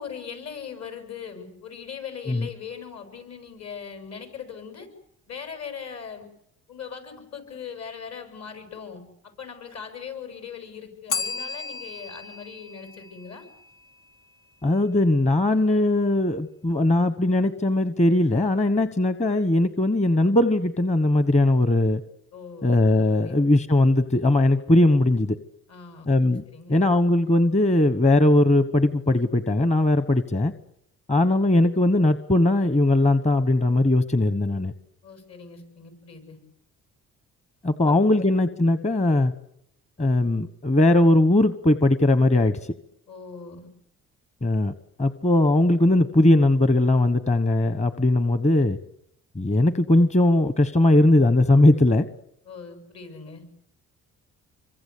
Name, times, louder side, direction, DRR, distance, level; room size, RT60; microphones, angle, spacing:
voice 1, 0.0-4.9 5.3-6.3 6.7-13.5 22.3-22.7 23.2-23.4 25.7-26.1 26.5-26.8 35.0-36.4 38.3-38.4 43.1-43.7 52.5-53.5, left 6 dB, 60° left, 7.4 m, -40 dB
Bell, 11.1-13.9, left 4 dB, 85° left, 3.3 m, -34 dB
voice 2, 14.6-22.0 22.6-25.4 26.1-26.4 26.7-30.5 31.1-34.7 37.6-39.3 40.0-42.6 44.4-44.7 45.0-48.8 49.3-52.1, left 1 dB, 20° left, 1.2 m, -19 dB
26.5 x 24.0 x 8.5 m
cardioid pair, 90°, 30 cm